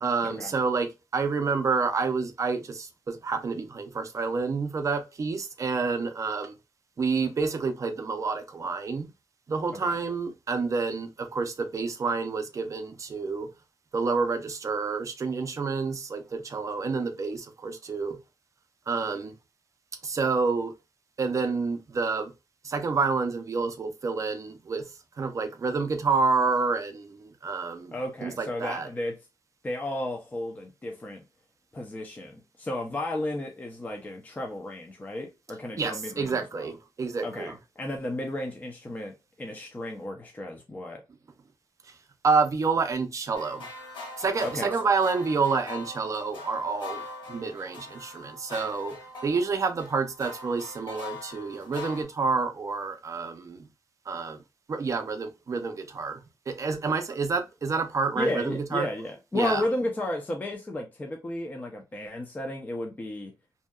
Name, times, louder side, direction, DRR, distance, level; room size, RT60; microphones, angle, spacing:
voice 1, 0.0-6.5 7.0-9.1 9.5-13.5 13.9-18.2 18.9-19.3 20.0-20.7 21.2-22.3 22.6-24.8 25.2-27.9 28.2-28.9 35.8-37.5 42.2-43.7 44.2-47.0 47.3-49.0 49.2-53.7 54.1-54.4 54.7-56.2 56.5-58.9 59.3-59.6, right 4 dB, 40° right, 0.4 m, -28 dB
voice 2, 27.9-29.2 29.6-31.2 31.7-36.7 37.2-41.0 44.4-44.7 56.8-56.9 58.2-63.3, left 1 dB, 20° left, 0.4 m, -33 dB
sound 1, 43.3-52.0, left 2 dB, 85° left, 1.1 m, -42 dB
2.7 x 2.2 x 2.2 m
wide cardioid pair, 135°, 8 cm